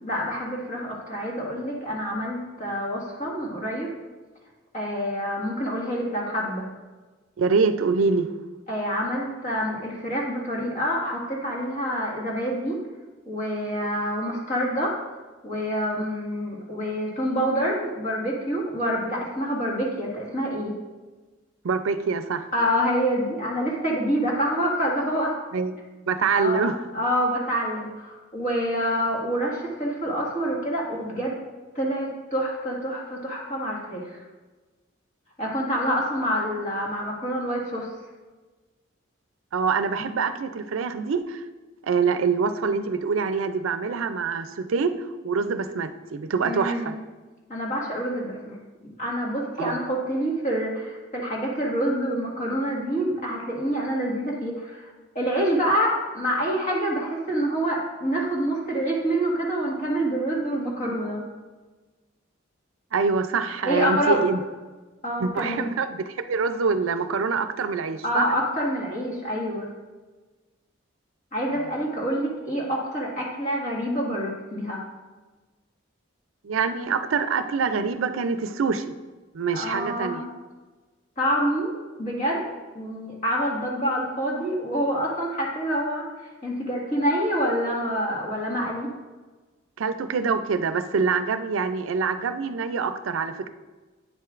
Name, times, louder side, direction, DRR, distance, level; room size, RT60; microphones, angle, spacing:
voice 1, 0.0-3.9 4.7-6.7 8.7-12.8 13.3-15.0 15.4-20.8 22.5-25.4 26.3-31.3 31.8-34.2 35.4-37.9 46.4-46.9 47.5-48.6 49.0-54.9 55.2-61.2 63.7-64.2 65.0-65.7 68.0-69.7 71.3-74.8 79.5-80.3 81.2-81.7 82.0-82.5 82.8-86.1 86.4-88.9, equal, 35° left, -3 dB, 1.7 m, -27 dB
voice 2, 7.4-8.3 21.6-22.5 25.5-25.7 26.1-26.8 39.5-41.4 41.8-47.0 49.6-49.9 62.9-64.4 65.2-68.3 76.4-78.8 79.3-80.2 89.8-93.5, right 5 dB, 85° right, 10 dB, 0.4 m, -25 dB
9.0 x 7.5 x 2.5 m, 1.3 s
head